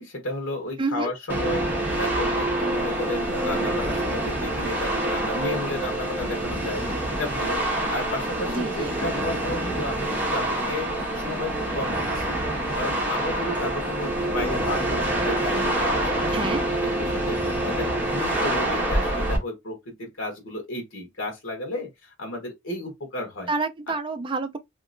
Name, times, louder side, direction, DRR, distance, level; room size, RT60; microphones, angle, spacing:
voice 1, 0.0-6.8 7.1-12.4 12.7-17.4 17.6-23.5 23.9-24.0, left 1 dB, 80° left, 1.2 m, -33 dB
voice 2, 0.8-1.1 8.5-8.9 16.3-16.6 23.5-24.6, right 3 dB, 25° right, 0.5 m, -28 dB
sound 1, 1.3-19.4, right 1 dB, 10° right, 1.2 m, -26 dB
3.1 x 2.9 x 2.5 m
head